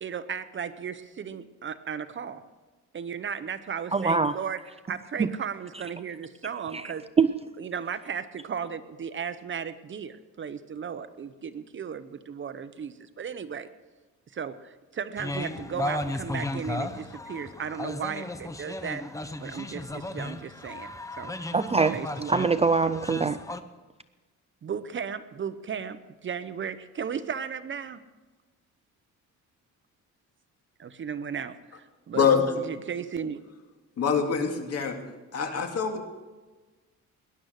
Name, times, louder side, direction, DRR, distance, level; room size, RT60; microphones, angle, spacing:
voice 1, 0.0-2.4 2.9-4.6 4.9-7.0 7.6-13.7 14.3-19.0 19.4-21.3 21.9-22.4 22.8-22.9 24.6-28.0 30.8-32.3 32.7-33.4, right 7 dB, 40° right, 12 dB, 0.8 m, -35 dB
voice 2, 3.9-4.3 5.2-5.3 6.7-6.9 7.2-7.3 21.5-22.0 22.3-23.4, right 4 dB, 20° right, 12 dB, 0.4 m, -23 dB
sound 1, 15.2-23.6, left 2 dB, 10° left, 0.7 m, -35 dB
voice 3, 32.1-32.6 34.0-35.0 35.3-36.1, left 6 dB, 50° left, 4 dB, 2.3 m, -25 dB
19.0 x 11.5 x 6.5 m, 1.3 s
cardioid pair, 130°, 31 cm